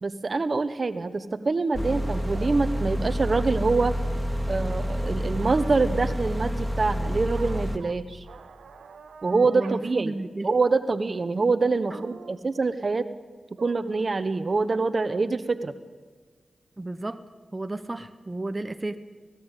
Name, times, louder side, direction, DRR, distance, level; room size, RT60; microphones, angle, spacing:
voice 1, 0.0-3.9 4.5-8.2 9.2-10.1 10.4-13.1 13.6-15.7, right 3 dB, 55° right, 12 dB, 1.2 m, -25 dB
sound 1, 1.7-7.8, equal, ahead, 2.4 m, -28 dB
sound 2, 2.4-2.6 5.4-5.9 7.4-8.0 8.2-9.8 10.2-10.3 11.9-12.4 13.6-14.1, right 6 dB, 85° right, 1.2 m, -44 dB
voice 2, 9.3-10.5 11.9-12.0 16.8-17.2 17.5-19.0, right 2 dB, 25° right, 10 dB, 1.1 m, -32 dB
18.0 x 17.5 x 8.4 m, 1.5 s
cardioid pair, 45°, 0 cm